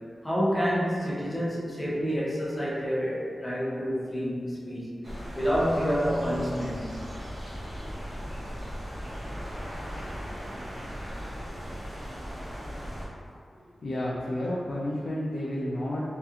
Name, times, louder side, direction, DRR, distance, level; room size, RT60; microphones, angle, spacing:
voice 1, 0.2-5.0 5.3-6.8, equal, 15° left, -7 dB, 0.6 m, -28 dB
sound 1, 5.0-13.1, equal, 35° right, 0.7 m, -38 dB
voice 2, 13.5-16.0, left 1 dB, 60° left, -7 dB, 0.4 m, -31 dB
2.8 x 2.4 x 2.4 m, 2.2 s
wide cardioid pair, 115°, 0 cm